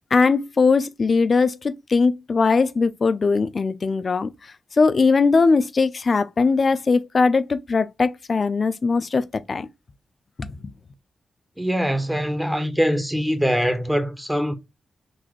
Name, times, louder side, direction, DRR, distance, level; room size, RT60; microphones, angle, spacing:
voice 1, 0.1-4.3 4.8-9.7 10.4-10.7, left 4 dB, 45° left, 0.4 m, -20 dB
voice 2, 11.6-14.5, equal, 5° right, 0.7 m, -23 dB
4.0 x 2.6 x 3.0 m
wide cardioid pair, 100°, 0 cm